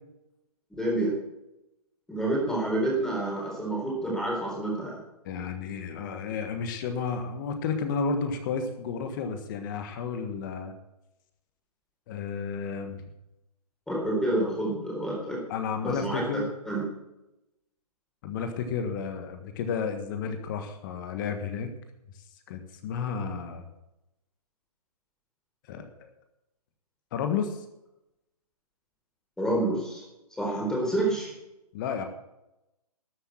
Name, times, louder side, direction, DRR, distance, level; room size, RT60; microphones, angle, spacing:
voice 1, 0.8-1.1 2.1-5.0 13.9-15.4 15.8-16.8 29.4-30.0 30.4-31.3, right 1 dB, 5° left, -3 dB, 4.0 m, -28 dB
voice 2, 5.2-10.7 12.1-13.0 15.5-16.5 18.2-21.8 22.5-23.7 25.7-25.9 27.1-27.6 31.7-32.1, left 5 dB, 30° left, 7 dB, 1.5 m, -32 dB
13.0 x 7.9 x 7.7 m, 0.91 s
hypercardioid pair, 150°, 20 cm